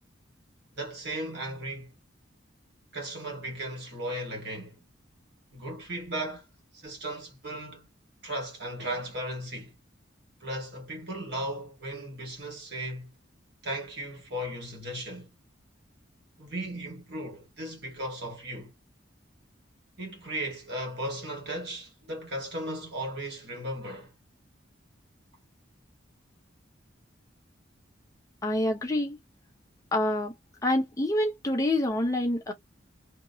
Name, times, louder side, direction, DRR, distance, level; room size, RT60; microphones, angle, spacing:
voice 1, 0.8-1.9 2.9-4.8 5.5-6.4 6.7-7.9 8.2-9.7 10.4-13.1 13.6-15.3 16.4-18.7 20.0-24.1, right 1 dB, 60° right, 1.9 m, -36 dB
voice 2, 28.4-29.2 29.9-30.3 30.6-32.5, left 1 dB, 15° left, 0.7 m, -26 dB
2.9 x 2.6 x 2.7 m
head